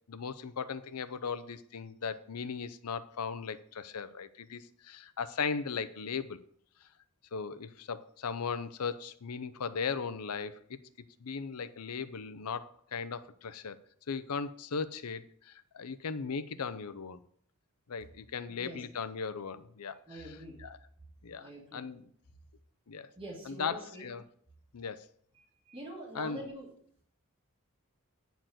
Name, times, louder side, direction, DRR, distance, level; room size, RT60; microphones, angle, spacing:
voice 1, 0.1-6.4 7.3-10.8 11.2-13.8 14.1-17.2 17.9-20.8 21.2-22.0 22.9-23.1 23.5-24.2 24.7-25.1 26.1-26.5, left 5 dB, 90° left, 14 dB, 0.6 m, -38 dB
voice 2, 18.5-18.8 20.1-20.6 21.3-21.9 23.2-24.1 25.6-26.7, right 1 dB, 25° right, -3 dB, 2.7 m, -45 dB
9.2 x 4.5 x 7.5 m, 0.63 s
head